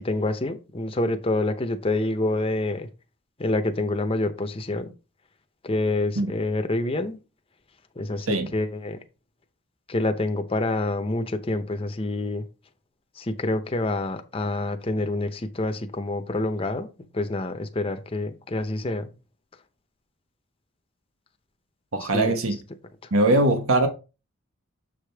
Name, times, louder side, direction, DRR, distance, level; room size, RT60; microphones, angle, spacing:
voice 1, 0.0-2.9 3.4-4.9 5.6-7.2 8.0-9.0 9.9-12.4 13.2-16.9 17.1-19.1 22.1-22.4, left 2 dB, 25° left, 0.7 m, -27 dB
voice 2, 21.9-22.6 23.1-23.9, right 2 dB, 85° right, 1.2 m, -21 dB
7.0 x 4.9 x 3.4 m
head